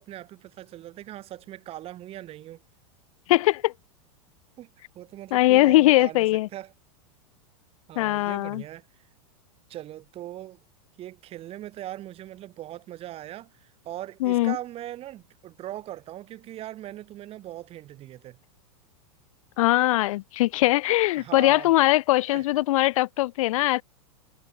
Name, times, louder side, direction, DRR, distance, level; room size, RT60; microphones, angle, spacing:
voice 1, 0.0-2.6 4.6-4.7 4.9-6.3 6.5-6.7 7.9-8.9 9.7-10.6 11.0-18.4 21.2-21.7 22.2-22.4, right 13 dB, 35° right, 5.3 m, -40 dB
voice 2, 3.3-3.7 5.3-6.5 8.0-8.6 14.2-14.6 19.6-23.8, left 17 dB, 70° left, 0.5 m, -21 dB
supercardioid pair, 135°, 18 cm